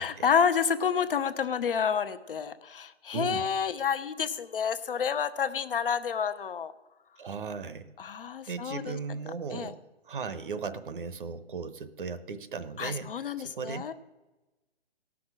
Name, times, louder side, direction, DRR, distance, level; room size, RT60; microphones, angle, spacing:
voice 1, 0.0-6.7 8.0-9.0 9.5-9.7 12.8-14.0, left 7 dB, 55° left, 11 dB, 0.8 m, -29 dB
voice 2, 3.1-3.5 7.2-7.9 8.5-9.8 10.1-13.8, right 5 dB, 55° right, 12 dB, 0.9 m, -37 dB
17.0 x 6.1 x 6.1 m, 1.1 s
hypercardioid pair, 160°, 32 cm